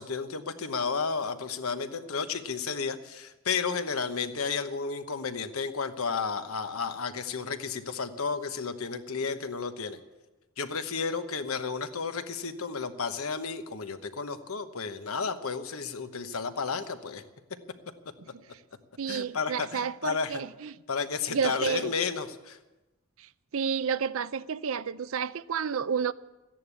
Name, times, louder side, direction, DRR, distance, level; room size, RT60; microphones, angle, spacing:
voice 1, 0.0-10.0 10.6-17.2 19.1-20.4 20.9-22.6, left 5 dB, 80° left, 1.1 m, -32 dB
voice 2, 19.0-20.7 21.3-21.9 23.5-26.1, right 6 dB, 70° right, 0.5 m, -30 dB
14.5 x 10.5 x 8.3 m
head